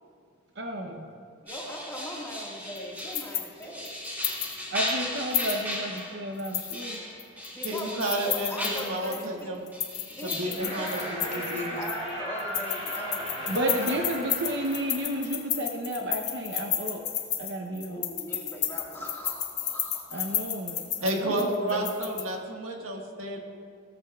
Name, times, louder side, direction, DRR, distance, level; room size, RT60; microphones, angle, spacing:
voice 1, 0.6-1.1 4.7-7.0 13.4-17.0 17.4-18.0 20.1-21.9, equal, 55° right, 2 dB, 0.8 m, -32 dB
voice 2, 1.4-4.0 7.0-7.1 7.5-9.5 10.1-14.0 17.9-20.8 21.7-21.8, equal, 10° left, -3 dB, 1.8 m, -40 dB
sound 1, 1.5-9.0 9.7-11.2, equal, 10° right, 2.2 m, -36 dB
sound 2, 2.8-4.6 4.9-5.0 5.3-6.0 6.4-9.3 9.7-12.1 12.4-22.2, left 9 dB, 35° left, 0.9 m, -32 dB
voice 3, 7.6-9.6 10.2-11.8 21.0-23.4, right 1 dB, 85° right, 1 dB, 1.6 m, -31 dB
sound 3, 10.6-15.4, equal, 35° right, 3.1 m, -37 dB
17.5 x 13.5 x 2.4 m, 2.4 s
head